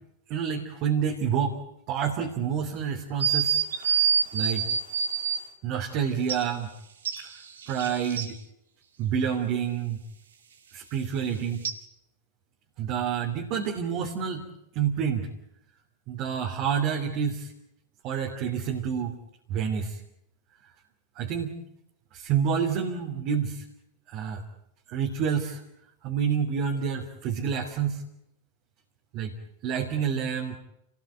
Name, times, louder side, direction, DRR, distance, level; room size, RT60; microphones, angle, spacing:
voice 1, 0.3-1.6 1.9-4.1 4.3-4.7 5.6-6.7 7.2-7.3 7.7-8.4 9.0-10.0 10.7-11.6 12.8-14.4 14.7-15.3 16.1-17.5 18.0-19.2 19.5-20.0 21.1-21.5 22.1-23.6 24.1-24.4 24.9-25.6 26.0-28.0 29.1-29.3 29.6-30.5, right 7 dB, 40° right, 2 dB, 3.1 m, -28 dB
sound 1, 3.2-5.4 6.3-6.4 7.0-8.3 11.6-11.7, right 7 dB, 65° right, 2.5 m, -26 dB
30.0 x 19.0 x 9.2 m, 0.83 s
figure-of-eight pair, 90°, 0 cm